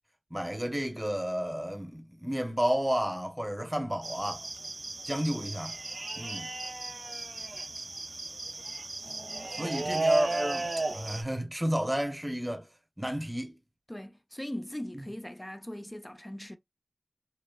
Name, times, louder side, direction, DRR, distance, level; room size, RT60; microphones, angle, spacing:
voice 1, 0.3-4.4 5.1-5.8 6.2-6.5 9.5-12.7 13.0-13.5 14.9-15.1, equal, 15° right, 0.8 m, -31 dB
sound 1, 4.0-11.2, right 2 dB, 90° right, 0.4 m, -34 dB
voice 2, 13.9-16.6, left 1 dB, 20° left, 0.4 m, -40 dB
3.0 x 2.1 x 2.3 m
wide cardioid pair, 45°, 0 cm